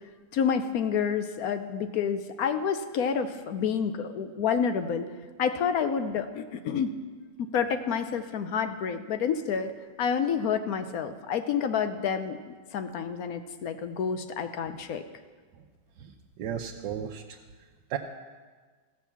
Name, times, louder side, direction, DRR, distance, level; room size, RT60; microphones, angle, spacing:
voice 1, 0.3-5.1 5.4-6.9 7.4-9.7 10.0-15.0, left 7 dB, 65° left, 9 dB, 1.0 m, -29 dB
voice 2, 16.0-17.4 17.9-18.0, right 9 dB, 85° right, 2 dB, 1.3 m, -35 dB
15.0 x 6.4 x 7.1 m, 1.5 s
omnidirectional pair, 1.9 m